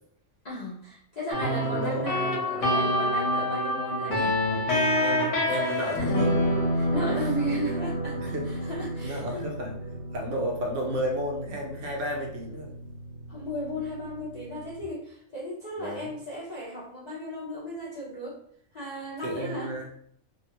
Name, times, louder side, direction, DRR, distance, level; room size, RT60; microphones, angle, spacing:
voice 1, 0.4-4.4 5.6-6.2 6.7-9.5 13.3-18.4 18.7-19.7, equal, 40° left, -7 dB, 0.7 m, -35 dB
sound 1, 1.3-14.8, equal, 65° left, 1.1 m, -29 dB
voice 2, 1.4-2.1 5.0-6.4 7.2-7.3 8.2-8.5 9.0-9.8 10.1-12.7 15.8-16.1 19.2-19.9, equal, 70° right, 0 dB, 1.0 m, -32 dB
2.7 x 2.3 x 2.8 m, 0.66 s
omnidirectional pair, 1.4 m